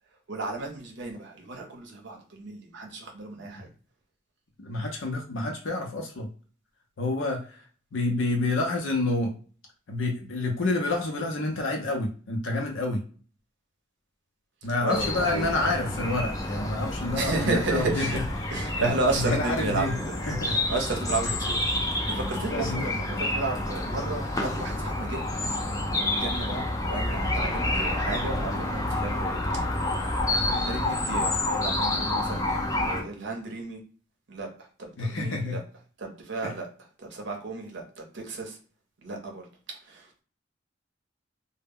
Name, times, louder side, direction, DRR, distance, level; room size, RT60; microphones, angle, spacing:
voice 1, 0.3-3.7 14.8-15.5 17.1-18.2 18.5-20.2 20.4-25.2 25.9-29.4 30.2-33.8 34.3-35.6 36.0-36.7 37.0-38.6 39.0-39.5 39.8-40.2, right 3 dB, 65° right, 2 dB, 0.7 m, -33 dB
voice 2, 4.6-6.3 7.0-7.5 7.9-9.3 9.9-13.0 14.6-18.1 18.7-19.9 20.3-20.6 22.5-22.9 35.0-35.6, left 2 dB, 75° left, 2 dB, 0.6 m, -28 dB
sound 1, 14.9-33.0, left 1 dB, 20° left, 0.4 m, -29 dB
2.1 x 2.0 x 3.5 m, 0.41 s
head